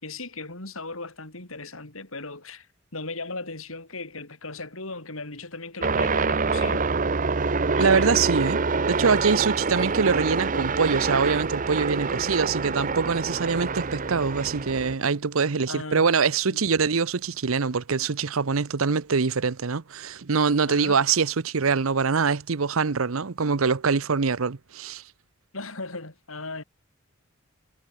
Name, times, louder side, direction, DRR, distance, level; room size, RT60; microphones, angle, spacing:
voice 1, 0.0-2.7 2.9-6.9 7.7-8.2 15.7-16.1 16.5-16.6 20.7-21.0 25.5-26.6, left 3 dB, 80° left, 6.0 m, -37 dB
sound 1, 5.8-14.9, right 4 dB, 40° right, 0.9 m, -26 dB
voice 2, 7.8-8.6 8.9-25.0, right 5 dB, 80° right, 0.8 m, -24 dB
head